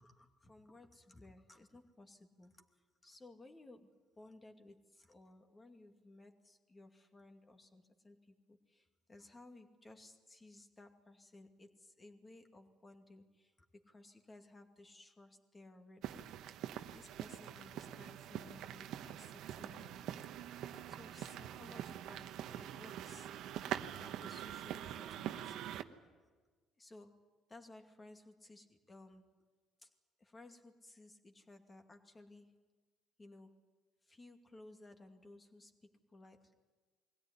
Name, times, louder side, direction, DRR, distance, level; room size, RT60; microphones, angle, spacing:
voice 1, 0.0-13.5 13.8-16.3 16.9-20.3 20.6-23.3 24.0-25.6 26.2-26.3 26.8-27.2 27.5-29.3 29.8-29.9 30.2-32.6 33.2-33.6 34.0-35.8 36.1-36.6, left 2 dB, 25° left, 5 dB, 2.4 m, -58 dB
sound 1, 16.0-25.8, right 11 dB, 75° right, 1.0 m, -44 dB
22.5 x 17.0 x 9.9 m, 1.4 s
supercardioid pair, 85°, 0 cm